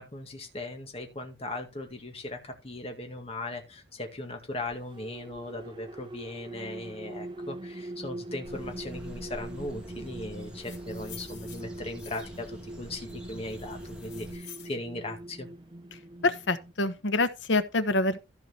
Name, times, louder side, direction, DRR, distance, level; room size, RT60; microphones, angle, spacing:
voice 1, 0.0-15.5, left 2 dB, 35° left, 2.1 m, -38 dB
sound 1, 4.7-16.7, right 1 dB, 25° right, 0.7 m, -42 dB
sound 2, 8.4-14.3, equal, 5° right, 2.2 m, -47 dB
sound 3, 10.4-12.5 13.1-14.8, left 9 dB, 65° left, 2.9 m, -49 dB
voice 2, 16.2-18.2, left 2 dB, 80° left, 1.1 m, -26 dB
14.5 x 4.9 x 4.3 m
head